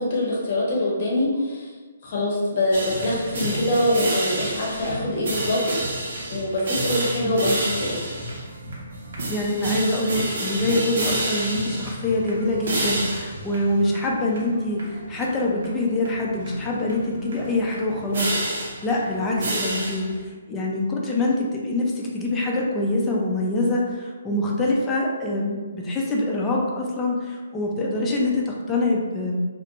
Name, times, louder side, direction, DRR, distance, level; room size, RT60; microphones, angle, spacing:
voice 1, 0.0-1.7 2.0-5.6 6.0-8.1, left 1 dB, 45° left, -4 dB, 0.8 m, -24 dB
sound 1, 2.7-20.2, right 1 dB, 60° right, 0.7 m, -30 dB
voice 2, 9.3-18.3 18.8-20.1 20.5-29.4, left 2 dB, 15° left, -3 dB, 0.4 m, -25 dB
2.3 x 2.1 x 2.9 m, 1.4 s
figure-of-eight pair, 135°, 0 cm